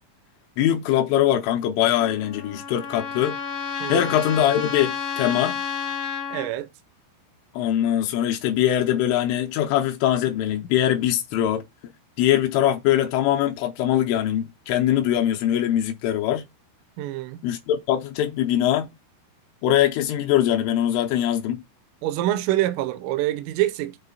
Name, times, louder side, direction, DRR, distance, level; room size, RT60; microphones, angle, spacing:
voice 1, 0.6-3.4 3.9-5.6 7.5-11.6 12.2-16.5 17.4-18.9 19.6-21.6, left 11 dB, 80° left, 3.1 m, -22 dB
Trumpet, 2.0-6.5, left 6 dB, 60° left, 0.8 m, -31 dB
voice 2, 3.8-4.1 6.3-6.7 17.0-17.4 22.0-24.0, right 14 dB, 85° right, 3.3 m, -25 dB
8.1 x 3.1 x 5.4 m
omnidirectional pair, 5.9 m